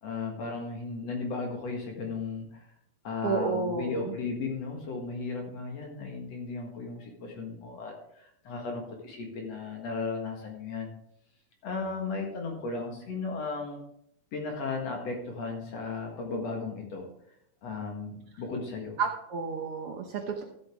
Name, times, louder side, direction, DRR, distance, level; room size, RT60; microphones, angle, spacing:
voice 1, 0.0-2.8 3.0-10.9 11.6-13.8 14.3-17.1 17.6-19.0, left 4 dB, 55° left, 1 dB, 2.6 m, -35 dB
voice 2, 3.2-4.2 19.0-20.4, right 5 dB, 65° right, 3 dB, 1.4 m, -31 dB
13.5 x 7.7 x 3.6 m, 0.74 s
omnidirectional pair, 3.7 m